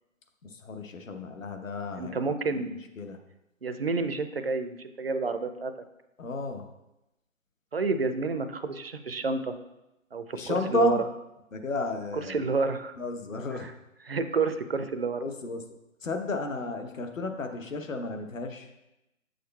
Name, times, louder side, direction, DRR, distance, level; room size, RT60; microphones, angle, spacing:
voice 1, 0.4-3.2 6.2-6.7 10.3-11.0 11.5-12.4 13.0-13.7 15.2-15.6 16.0-18.7, left 3 dB, 70° left, 6 dB, 1.0 m, -33 dB
voice 2, 1.9-2.7 3.6-5.7 7.7-9.5 10.1-11.0 12.3-12.9 13.5-13.7 14.1-15.2, right 4 dB, 50° right, 10 dB, 0.4 m, -29 dB
7.9 x 6.4 x 2.3 m, 0.93 s
figure-of-eight pair, 160°, 41 cm